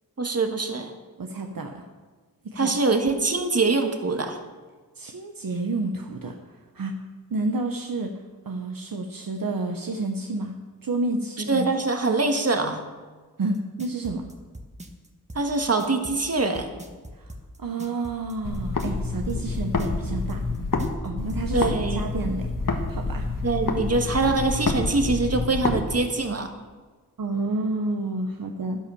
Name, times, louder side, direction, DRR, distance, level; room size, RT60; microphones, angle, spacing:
voice 1, 0.2-0.9 2.6-4.4 11.5-12.8 15.3-16.7 21.5-22.0 23.4-26.5, right 3 dB, 45° right, 5 dB, 1.6 m, -24 dB
voice 2, 1.2-1.8 2.4-2.7 5.0-6.4 6.7-7.0 7.3-10.5 10.8-11.7 13.4-14.2 17.2-17.3 17.6-20.4 21.0-21.7 21.9-23.3 27.2-28.8, right 2 dB, 70° right, 4 dB, 1.1 m, -30 dB
sound 1, 13.5-21.4, right 1 dB, 20° right, 1.4 m, -41 dB
sound 2, 18.4-20.9 21.2-25.8, left 3 dB, 60° left, 1.5 m, -28 dB
11.5 x 11.0 x 7.0 m, 1.4 s
wide cardioid pair, 100°, 36 cm